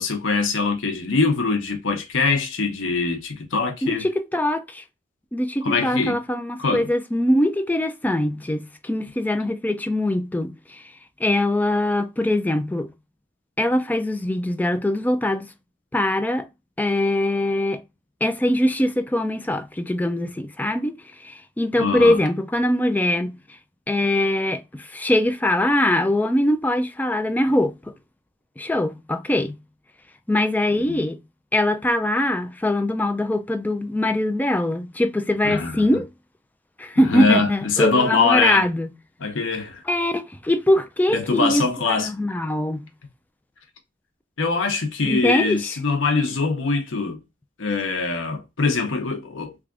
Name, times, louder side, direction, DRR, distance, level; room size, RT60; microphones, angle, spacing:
voice 1, 0.0-4.1 5.6-6.2 6.6-6.9 21.8-22.2 30.7-31.0 35.4-36.0 37.0-38.6 39.2-39.8 41.1-42.1 44.4-47.2 47.6-49.5, left 4 dB, 80° left, 0.8 m, -23 dB
voice 2, 3.8-4.8 5.3-10.8 11.2-12.9 13.6-15.5 15.9-16.5 16.8-17.8 18.2-23.4 23.9-27.9 28.6-29.6 30.3-31.2 31.5-36.1 36.8-38.9 39.9-41.6 41.9-42.8 45.0-45.7, left 1 dB, 10° left, 0.3 m, -22 dB
3.4 x 2.4 x 3.6 m
head